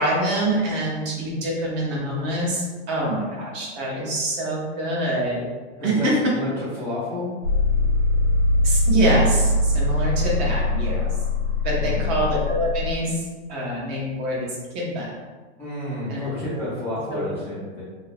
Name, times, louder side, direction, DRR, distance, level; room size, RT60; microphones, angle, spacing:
voice 1, 0.0-5.5 5.8-6.3 8.6-11.1 11.6-13.2 13.5-15.1 16.1-16.7 17.1-17.2, right 1 dB, 35° right, -4 dB, 0.8 m, -25 dB
voice 2, 5.8-7.3 11.8-12.1 15.6-17.8, left 1 dB, 5° left, -14 dB, 0.5 m, -30 dB
sound 1, 7.4-12.9, left 2 dB, 85° right, 0.9 m, -22 dB
2.7 x 2.2 x 3.4 m, 1.4 s
hypercardioid pair, 145°, 37 cm